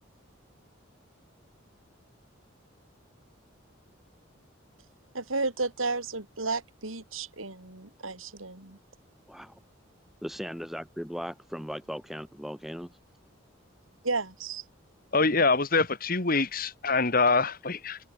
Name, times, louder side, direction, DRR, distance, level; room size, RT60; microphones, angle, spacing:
voice 1, 5.1-8.8 14.0-14.6, right 3 dB, 90° right, 5.0 m, -32 dB
voice 2, 10.2-12.9 15.2-15.3, equal, ahead, 3.5 m, -38 dB
voice 3, 15.1-18.0, left 3 dB, 45° left, 2.2 m, -25 dB
head